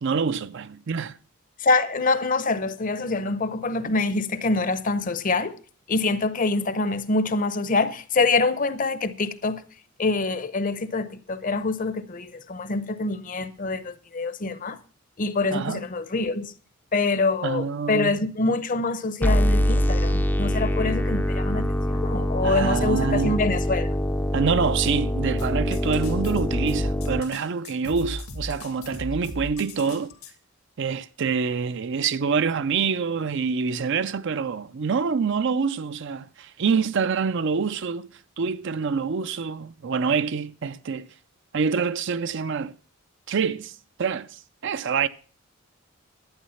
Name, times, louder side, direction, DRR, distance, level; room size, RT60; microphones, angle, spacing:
voice 1, 0.0-1.2 15.5-15.8 17.4-18.2 22.4-23.4 24.3-30.1 30.8-38.1 38.4-41.1 41.5-42.7 43.3-45.1, right 5 dB, 55° right, 0.5 m, -26 dB
voice 2, 1.6-5.6 5.9-9.6 10.0-14.8 15.2-16.5 16.9-23.9, left 3 dB, 40° left, 0.7 m, -25 dB
sound 1, 19.2-27.2, equal, 10° left, 0.5 m, -24 dB
sound 2, 25.4-30.3, left 1 dB, 85° left, 1.8 m, -37 dB
11.5 x 9.1 x 5.6 m
head